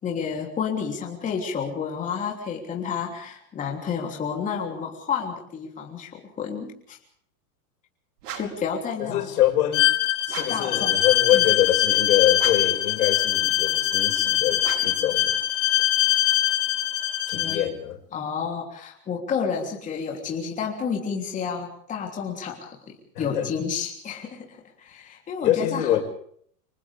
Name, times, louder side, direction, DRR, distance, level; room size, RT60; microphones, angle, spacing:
voice 1, 0.0-7.0 8.4-9.2 10.5-11.0 11.3-11.5 17.3-17.7 18.1-26.0, left 6 dB, 15° left, 3.3 m, -30 dB
sound 1, 8.2-8.7 10.2-10.7 12.3-12.8 14.6-15.1, right 8 dB, 75° right, 5.1 m, -38 dB
voice 2, 9.0-9.9 10.3-15.4 17.3-18.0 23.2-23.5 25.4-26.0, left 12 dB, 70° left, 5.8 m, -24 dB
Bowed string instrument, 9.7-17.6, left 14 dB, 45° left, 2.0 m, -23 dB
29.5 x 26.0 x 3.6 m
supercardioid pair, 165°, 47 cm